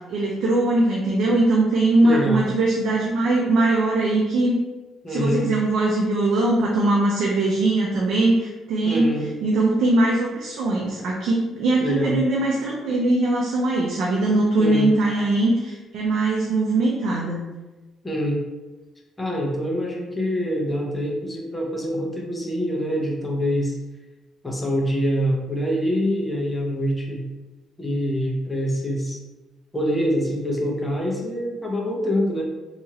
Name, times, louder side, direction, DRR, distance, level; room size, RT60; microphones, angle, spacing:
voice 1, 0.0-4.6 5.1-17.4, right 2 dB, 75° right, -3 dB, 0.4 m, -21 dB
voice 2, 2.0-2.4 5.0-5.5 8.8-9.3 11.8-12.2 14.6-14.9 18.0-18.4 19.2-23.7 24.4-27.2 27.8-29.2 29.7-32.4, equal, 10° left, -1 dB, 0.5 m, -25 dB
2.9 x 2.4 x 2.7 m, 1.1 s
cardioid pair, 160°, 0 cm